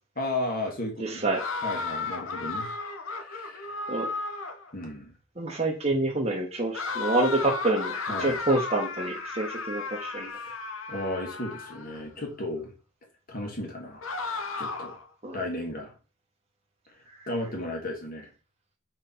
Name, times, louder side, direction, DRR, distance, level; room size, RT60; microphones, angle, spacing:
voice 1, 0.2-1.2 1.6-2.7 3.2-3.8 4.7-5.1 8.1-8.4 10.3-10.5 10.9-12.7 13.3-14.0 14.6-15.0 15.3-15.9 17.3-18.3, left 1 dB, 45° left, 1 dB, 1.9 m, -34 dB
voice 2, 1.0-1.4 3.9-4.1 5.4-10.3 15.2-15.4, right 2 dB, 30° right, -2 dB, 1.2 m, -27 dB
sound 1, 1.3-4.7 6.7-12.0 14.0-15.0, left 3 dB, 85° left, 1.0 m, -34 dB
4.4 x 4.3 x 5.7 m, 0.33 s
head